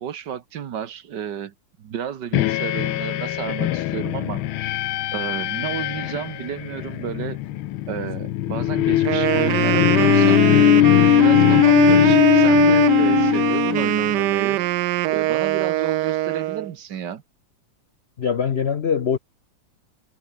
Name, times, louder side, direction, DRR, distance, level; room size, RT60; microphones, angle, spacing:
voice 1, 0.0-4.5 5.1-7.4 7.9-14.6 15.1-17.2, right 9 dB, 60° right, 1.7 m, -32 dB
sound 1, 2.3-14.4, left 14 dB, 80° left, 1.6 m, -20 dB
Wind instrument woodwind instrument, 9.0-16.7, right 16 dB, 75° right, 1.0 m, -21 dB
voice 2, 18.2-19.2, left 7 dB, 60° left, 0.6 m, -22 dB
omnidirectional pair, 2.3 m